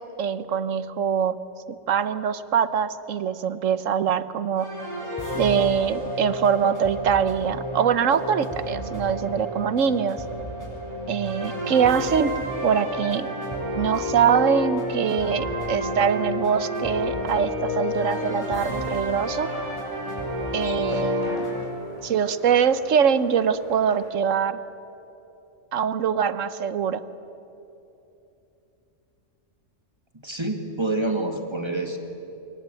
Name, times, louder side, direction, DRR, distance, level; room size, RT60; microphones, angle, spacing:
voice 1, 0.0-1.3 1.9-4.7 5.3-10.2 11.1-13.3 13.7-19.5 20.5-21.4 22.0-24.6 25.7-27.0, right 7 dB, 75° right, 13 dB, 1.3 m, -23 dB
sound 1, 4.6-21.6, left 1 dB, 15° left, 7.3 m, -30 dB
sound 2, 4.9-11.5, right 2 dB, 65° left, 6.1 m, -42 dB
sound 3, 18.1-24.1, left 1 dB, 35° left, 5.6 m, -46 dB
voice 2, 30.2-32.0, right 2 dB, 20° right, 4 dB, 2.1 m, -27 dB
25.0 x 23.0 x 9.1 m, 2.9 s
omnidirectional pair, 1.3 m